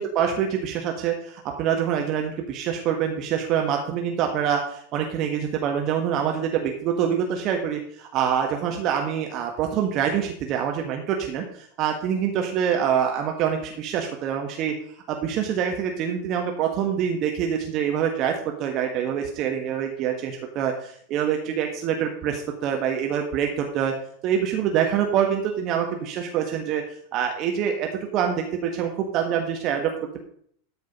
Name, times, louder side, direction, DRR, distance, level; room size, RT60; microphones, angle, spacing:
voice 1, 0.0-11.4 11.8-14.7 15.1-23.9 24.2-26.8 27.1-29.9, right 8 dB, 40° right, 3 dB, 1.5 m, -25 dB
13.0 x 5.1 x 5.4 m, 0.64 s
figure-of-eight pair, 90°, 0 cm